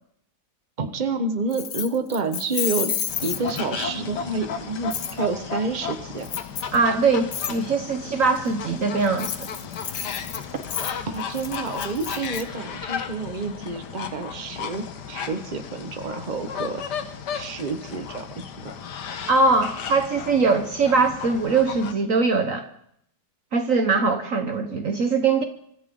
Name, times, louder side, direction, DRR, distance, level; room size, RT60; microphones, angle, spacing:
voice 1, 0.8-2.9 3.2-6.3 11.1-16.8 17.3-18.7, right 3 dB, 30° right, 7 dB, 1.4 m, -29 dB
Keys jangling, 1.5-3.8 4.9-5.1 6.2-6.8 7.3-7.5 9.0-12.4, left 8 dB, 60° left, 1.4 m, -30 dB
sound 1, 3.1-21.9, left 6 dB, 75° left, 1.8 m, -34 dB
voice 2, 6.7-9.5 19.3-22.6 23.5-25.4, right 4 dB, 55° right, 8 dB, 1.4 m, -21 dB
24.5 x 14.0 x 3.9 m, 0.71 s
omnidirectional pair, 1.8 m